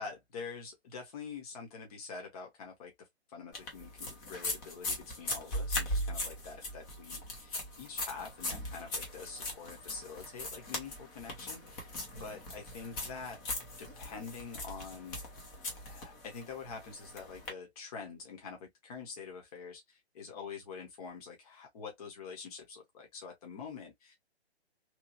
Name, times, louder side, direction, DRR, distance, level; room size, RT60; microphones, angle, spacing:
voice 1, 0.0-13.4 13.8-15.2 15.9-24.2, left 5 dB, 35° left, 1.2 m, -46 dB
sound 1, 3.5-17.5, left 1 dB, 20° left, 0.9 m, -39 dB
3.1 x 2.7 x 2.6 m
figure-of-eight pair, 135°, 33 cm